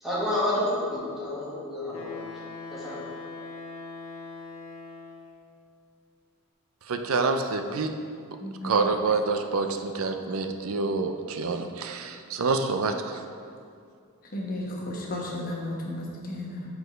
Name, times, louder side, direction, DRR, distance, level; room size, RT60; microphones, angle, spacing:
voice 1, 0.0-2.3 2.7-3.0, left 1 dB, ahead, -9 dB, 1.7 m, -29 dB
Wind instrument woodwind instrument, 1.9-5.4, left 3 dB, 70° left, 1.0 m, -41 dB
voice 2, 6.9-7.9 8.6-12.9, right 4 dB, 65° right, 7 dB, 0.5 m, -27 dB
voice 3, 8.4-8.8 14.3-16.6, left 1 dB, 40° left, -2 dB, 1.2 m, -34 dB
6.3 x 4.8 x 5.1 m, 2.4 s
head